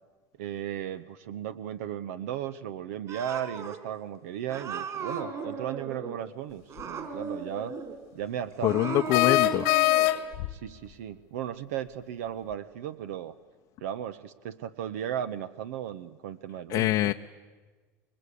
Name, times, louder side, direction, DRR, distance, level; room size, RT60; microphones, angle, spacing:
voice 1, 0.4-7.8 8.1-8.9 9.2-9.6 10.5-13.3 13.8-17.1, right 10 dB, 85° right, 0.9 m, -36 dB
Cat, 3.1-3.8 4.5-6.2 6.7-8.0 8.5-10.1, right 5 dB, 40° right, 4.2 m, -36 dB
sound 1, 6.8-6.9 9.1-10.5, left 17 dB, 75° left, 1.5 m, -23 dB
voice 2, 8.6-9.7 16.7-17.1, left 15 dB, 60° left, 0.7 m, -24 dB
26.0 x 22.0 x 8.4 m
supercardioid pair, 110°, 8 cm